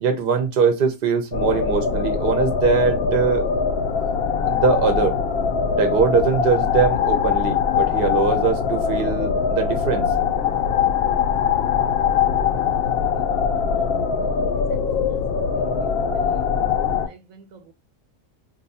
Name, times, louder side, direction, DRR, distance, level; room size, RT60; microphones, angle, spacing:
voice 1, 0.0-3.4 4.4-5.2 5.8-10.1, right 5 dB, 50° right, 0.7 m, -21 dB
sound 1, 1.3-17.1, left 6 dB, 65° left, 0.6 m, -22 dB
voice 2, 14.3-14.8 15.1-15.2 15.5-16.4 17.0-17.7, right 7 dB, 75° right, 1.0 m, -48 dB
2.6 x 2.3 x 3.9 m
omnidirectional pair, 1.5 m